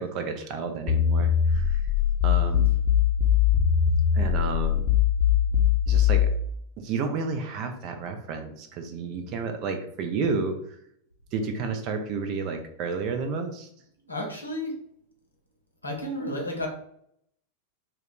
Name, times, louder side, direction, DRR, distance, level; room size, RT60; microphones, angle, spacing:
voice 1, 0.0-1.8 2.2-2.7 4.1-4.9 5.9-6.3 6.8-10.6 11.3-13.7, right 4 dB, 40° right, 6 dB, 0.4 m, -31 dB
sound 1, 0.9-6.3, left 9 dB, 35° left, 0.5 m, -21 dB
voice 2, 14.1-14.7 15.8-16.7, left 1 dB, 80° left, 0 dB, 0.7 m, -32 dB
2.3 x 2.2 x 3.5 m, 0.70 s
figure-of-eight pair, 90°, 0 cm